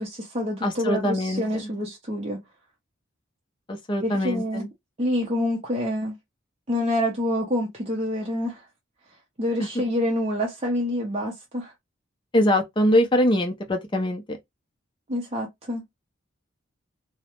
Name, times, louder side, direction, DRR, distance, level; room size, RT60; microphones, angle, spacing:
voice 1, 0.0-2.4 4.0-4.7 5.0-6.2 6.7-8.6 9.4-11.7 15.1-15.8, left 1 dB, 30° right, 0.5 m, -27 dB
voice 2, 0.6-1.7 3.7-4.7 12.3-14.4, left 1 dB, 25° left, 0.5 m, -23 dB
2.3 x 2.0 x 2.8 m
head